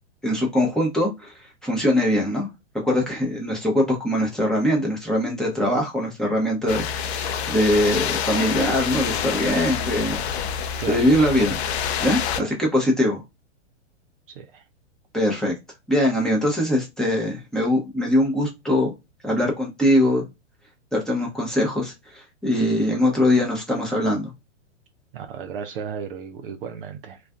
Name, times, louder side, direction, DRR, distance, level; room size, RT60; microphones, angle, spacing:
voice 1, 0.2-2.5 2.8-10.3 10.5-11.6 12.0-13.2 15.1-15.6 15.9-18.9 19.2-20.3 20.9-24.3, left 1 dB, ahead, 0.6 m, -22 dB
sound 1, 6.7-12.4, left 8 dB, 60° left, 0.5 m, -27 dB
voice 2, 14.3-14.6 25.1-27.2, right 7 dB, 50° right, 0.4 m, -34 dB
2.4 x 2.3 x 2.3 m
hypercardioid pair, 115°, 36 cm